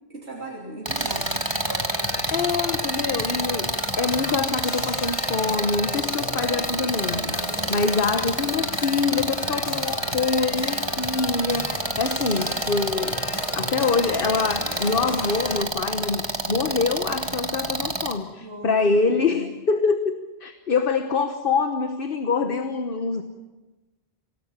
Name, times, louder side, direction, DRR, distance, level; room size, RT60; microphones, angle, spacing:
voice 1, 0.1-1.8 6.8-7.9 8.3-8.5 18.4-19.5, right 2 dB, 80° right, -2 dB, 3.4 m, -39 dB
sound 1, 0.9-15.6, left 3 dB, 30° left, 1.1 m, -35 dB
sound 2, 0.9-18.1, right 2 dB, 25° right, 1.6 m, -28 dB
voice 2, 2.3-3.7 4.0-7.3 7.7-13.2 13.5-23.2, left 4 dB, 55° left, 8 dB, 1.3 m, -25 dB
26.0 x 18.0 x 7.3 m, 1.1 s
omnidirectional pair, 1.1 m